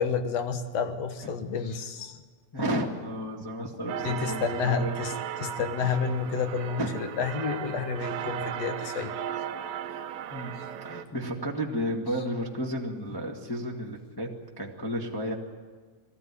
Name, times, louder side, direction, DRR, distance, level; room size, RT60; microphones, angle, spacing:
voice 1, 0.0-2.2 4.0-5.1 5.4-9.1, left 5 dB, 65° left, 7 dB, 2.2 m, -30 dB
voice 2, 2.5-4.9 5.8-6.0 6.8-6.9 10.3-15.3, equal, 10° left, -1 dB, 1.1 m, -33 dB
sound 1, 3.9-11.0, right 9 dB, 70° right, 2.0 m, -36 dB
20.0 x 15.0 x 9.7 m, 1.5 s
omnidirectional pair, 3.3 m